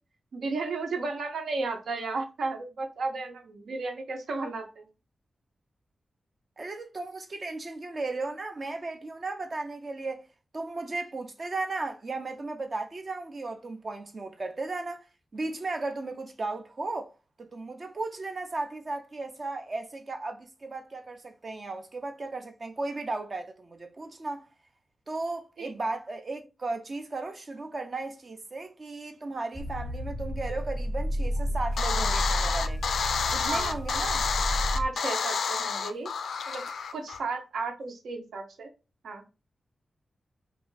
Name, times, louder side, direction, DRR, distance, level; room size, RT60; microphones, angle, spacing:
voice 1, 0.3-4.9 25.6-25.7 33.4-33.8 34.7-36.1 36.5-36.6 36.9-38.7 39.0-39.2, right 3 dB, 80° right, 0.8 m, -33 dB
voice 2, 6.6-10.3 10.5-15.0 15.3-17.1 17.4-24.5 25.1-32.8 33.3-34.2, right 3 dB, 35° right, 0.4 m, -35 dB
sound 1, 29.5-34.9, equal, 15° right, 0.8 m, -31 dB
sound 2, 31.8-37.2, left 6 dB, 85° left, 0.3 m, -29 dB
3.1 x 2.5 x 3.8 m
wide cardioid pair, 155°, 0 cm